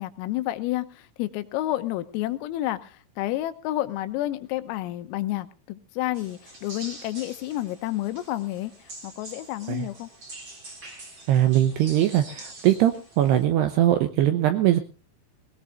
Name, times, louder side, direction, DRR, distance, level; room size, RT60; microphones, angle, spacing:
voice 1, 0.0-8.7 9.0-10.1, left 15 dB, 90° left, 11 dB, 3.6 m, -30 dB
sound 1, 6.1-13.4, right 2 dB, 30° right, 3.2 m, -45 dB
voice 2, 11.3-14.8, right 12 dB, 85° right, 9 dB, 2.4 m, -21 dB
20.0 x 18.0 x 2.5 m, 0.33 s
omnidirectional pair, 5.9 m